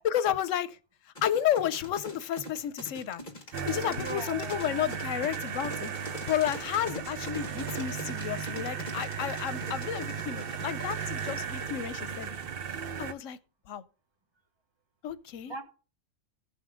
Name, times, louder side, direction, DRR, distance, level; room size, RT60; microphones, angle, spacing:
voice 1, 0.0-0.8 1.0-3.2 3.5-12.4 12.6-13.4 13.7-13.8 15.0-15.5, left 10 dB, 85° left, 1.0 m, -32 dB
sound 1, 1.2-12.6, left 1 dB, 40° left, 1.7 m, -42 dB
sound 2, 3.5-13.1, right 7 dB, 55° right, 0.8 m, -36 dB
voice 2, 3.9-5.0 15.5-15.6, right 3 dB, 20° right, 1.3 m, -40 dB
16.0 x 5.6 x 3.6 m
omnidirectional pair, 1.3 m